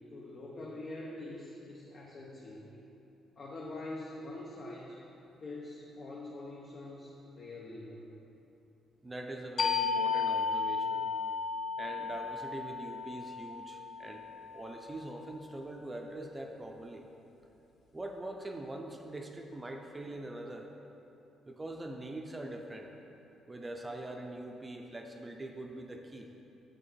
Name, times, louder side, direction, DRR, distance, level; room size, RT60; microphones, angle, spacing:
voice 1, 0.1-2.7 3.4-5.0 5.4-8.1, left 2 dB, 50° left, -4 dB, 1.1 m, -44 dB
voice 2, 9.0-11.1 11.8-14.3 14.5-17.1 17.9-20.7 21.4-22.9 23.5-26.3, right 1 dB, 20° right, 3 dB, 0.6 m, -43 dB
sound 1, 9.6-14.9, left 5 dB, 65° left, 0.7 m, -34 dB
8.0 x 6.3 x 4.6 m, 3.0 s
cardioid pair, 90°, 0 cm